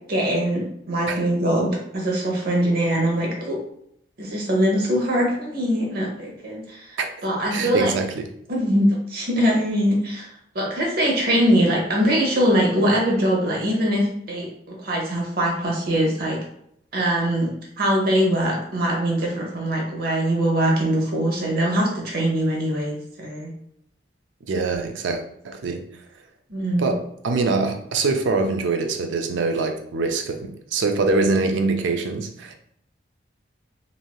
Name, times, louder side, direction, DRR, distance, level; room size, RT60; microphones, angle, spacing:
voice 1, 0.1-3.6 4.2-7.9 8.5-10.3 10.5-14.5 14.8-16.4 16.9-23.5 26.5-26.9, equal, 55° right, -1 dB, 0.9 m, -22 dB
voice 2, 7.5-8.3 24.5-25.8 26.8-32.5, right 3 dB, 85° right, 5 dB, 0.4 m, -24 dB
3.1 x 2.7 x 2.3 m, 0.71 s
head